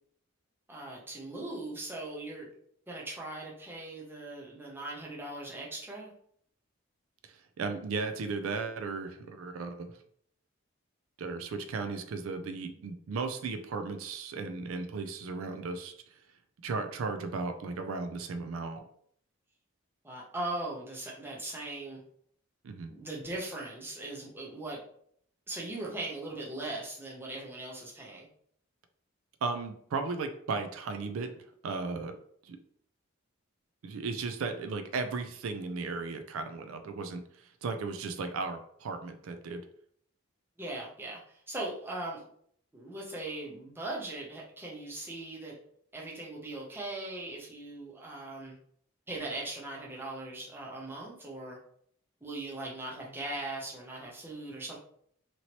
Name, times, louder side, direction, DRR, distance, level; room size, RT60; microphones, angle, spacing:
voice 1, 0.7-2.5 2.9-6.1 20.0-22.0 22.9-24.8 25.5-28.3 40.6-42.2 42.7-45.6 45.9-48.5 49.1-51.6 52.2-54.8, right 2 dB, 10° right, -4 dB, 0.6 m, -39 dB
voice 2, 7.2-10.0 11.2-16.3 16.6-18.8 22.6-22.9 29.4-31.3 31.6-32.2 32.4-32.6 33.8-39.6, right 4 dB, 80° right, 7 dB, 0.4 m, -36 dB
2.9 x 2.7 x 2.9 m, 0.65 s
head